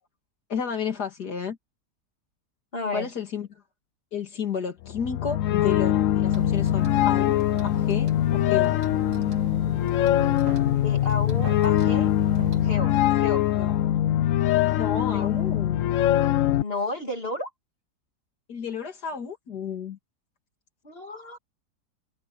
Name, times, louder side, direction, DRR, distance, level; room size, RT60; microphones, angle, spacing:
voice 1, 0.5-1.6 2.9-3.5 4.1-8.8 13.6-13.8 14.7-15.9 18.5-20.0, left 6 dB, 85° left, 2.7 m, -32 dB
voice 2, 2.7-3.1 10.8-12.1 12.6-13.5 15.1-15.3 16.6-17.5 20.8-21.4, left 2 dB, 35° left, 2.9 m, -32 dB
sound 1, 4.9-16.6, left 12 dB, 65° left, 0.8 m, -22 dB
sound 2, 6.3-12.8, right 7 dB, 90° right, 2.4 m, -40 dB
omnidirectional pair, 1.7 m